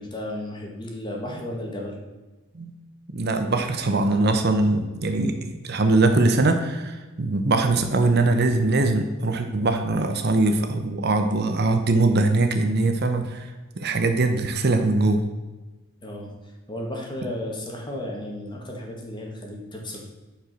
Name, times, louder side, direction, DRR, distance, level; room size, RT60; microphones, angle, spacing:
voice 1, 0.0-2.0 16.0-20.0, left 1 dB, 20° left, 0 dB, 1.7 m, -34 dB
voice 2, 3.1-15.2, right 2 dB, 50° right, 6 dB, 0.8 m, -22 dB
9.7 x 5.0 x 6.0 m, 1.2 s
head